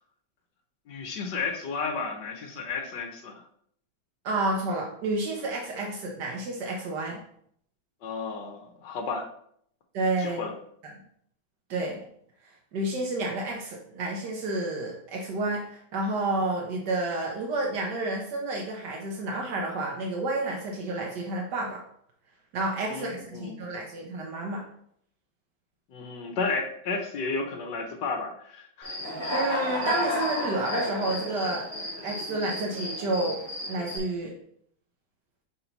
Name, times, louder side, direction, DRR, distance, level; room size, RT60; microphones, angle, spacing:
voice 1, 0.9-3.4 8.0-9.3 10.2-10.6 22.9-23.7 25.9-28.9, left 4 dB, 85° left, 2 dB, 1.6 m, -33 dB
voice 2, 4.2-7.2 9.9-10.4 10.8-10.9 11.7-12.1 12.7-21.8 22.5-24.6 29.3-31.7 32.0-33.4 33.7-34.3, right 2 dB, 85° right, -1 dB, 1.6 m, -30 dB
Human voice / Cricket, 28.8-34.0, left 1 dB, 10° right, 2.3 m, -32 dB
5.8 x 4.7 x 4.0 m, 0.67 s
omnidirectional pair, 1.8 m